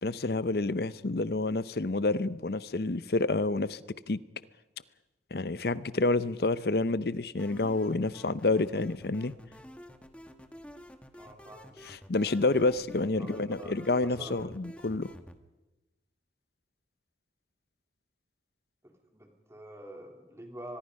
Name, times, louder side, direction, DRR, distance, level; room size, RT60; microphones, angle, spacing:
voice 1, 0.0-4.2 5.3-9.4 11.9-15.1, left 2 dB, 60° left, 16 dB, 0.7 m, -29 dB
sound 1, 7.4-15.4, equal, 5° left, 1.1 m, -49 dB
voice 2, 11.1-11.8 13.2-14.5 19.1-20.8, right 1 dB, 15° right, 3 dB, 3.1 m, -46 dB
24.5 x 21.0 x 5.4 m, 1.0 s
head